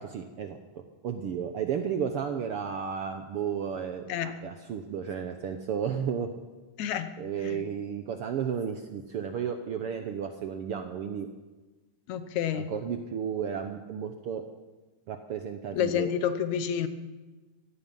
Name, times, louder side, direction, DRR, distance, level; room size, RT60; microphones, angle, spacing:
voice 1, 0.0-6.3 7.2-11.3 12.5-14.4 15.1-16.1, right 7 dB, 75° right, 6 dB, 1.3 m, -33 dB
voice 2, 6.8-7.1 7.4-7.6 12.1-12.7 15.7-16.9, left 9 dB, 70° left, 11 dB, 2.1 m, -29 dB
17.0 x 14.5 x 5.5 m, 1.2 s
omnidirectional pair, 3.7 m